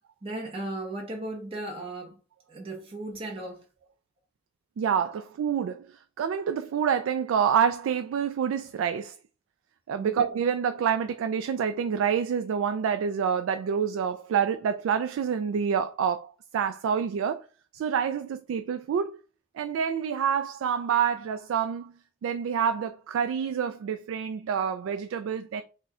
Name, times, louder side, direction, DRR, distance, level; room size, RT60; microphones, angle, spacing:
voice 1, 0.2-2.2 2.5-3.7 10.0-10.3, right 2 dB, 30° right, 0.9 m, -36 dB
voice 2, 4.8-5.9 6.2-9.2 9.9-17.4 17.7-19.2 19.6-21.9 22.2-25.6, right 7 dB, 85° right, 0.3 m, -27 dB
4.2 x 2.2 x 3.6 m
head